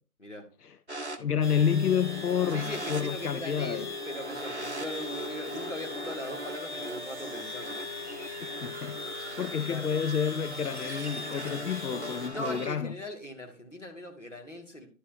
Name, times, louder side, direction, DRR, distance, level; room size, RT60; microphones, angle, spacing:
sound 1, 0.9-12.7, right 1 dB, 50° right, 0.7 m, -41 dB
voice 1, 1.2-3.9 8.4-9.0 9.4-12.9, left 8 dB, 85° left, 0.6 m, -29 dB
sound 2, 1.4-12.3, left 3 dB, 30° left, 1.9 m, -39 dB
voice 2, 2.5-7.8 9.6-9.9 12.3-14.9, left 1 dB, 55° left, 2.0 m, -40 dB
11.0 x 5.6 x 2.7 m
figure-of-eight pair, 180°, 45 cm